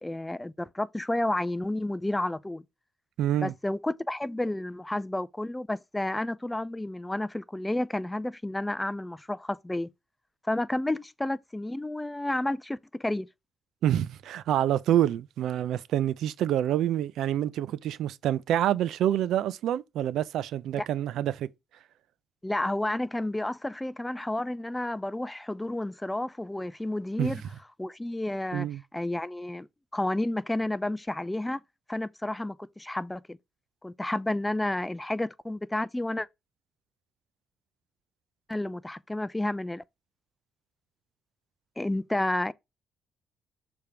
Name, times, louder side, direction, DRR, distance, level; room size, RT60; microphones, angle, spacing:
voice 1, 0.0-2.6 3.4-9.9 10.4-13.3 20.7-20.9 22.4-27.4 27.8-28.7 28.9-29.7 29.9-31.6 31.9-33.4 33.8-36.3 38.5-39.8 41.8-42.5, left 1 dB, 10° left, 0.4 m, -31 dB
voice 2, 3.2-3.5 13.8-21.5 27.2-27.3 28.5-28.8, right 11 dB, 80° right, 0.5 m, -27 dB
6.8 x 3.5 x 4.4 m
cardioid pair, 90°, 0 cm